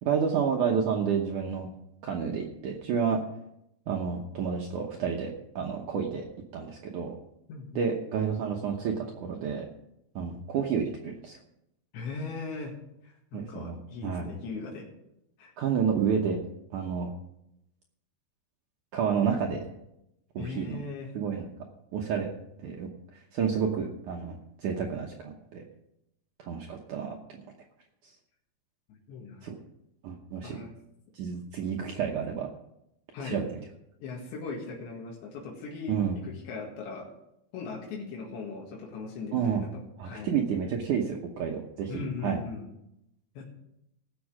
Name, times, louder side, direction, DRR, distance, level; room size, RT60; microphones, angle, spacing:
voice 1, 0.0-1.7 2.0-3.2 3.9-5.3 5.5-6.2 6.5-7.1 7.7-9.7 10.1-11.4 13.3-13.8 14.0-14.3 15.6-16.4 16.7-17.1 18.9-19.6 20.3-20.8 21.1-21.5 21.9-22.3 22.6-22.9 23.3-25.6 26.4-27.2 29.4-29.6 30.0-30.6 31.1-32.5 33.2-33.6 35.9-36.2 39.3-39.6 40.0-42.4, right 7 dB, 80° right, 1 dB, 1.8 m, -30 dB
voice 2, 7.5-8.1 11.9-12.7 13.0-14.9 15.4-15.5 20.4-21.1 28.9-29.5 30.4-30.7 33.1-33.4 34.0-36.0 36.2-37.1 37.5-40.3 41.9-42.7 43.4-43.5, left 4 dB, 85° left, -2 dB, 4.2 m, -39 dB
18.0 x 7.3 x 4.9 m, 0.83 s
omnidirectional pair, 5.0 m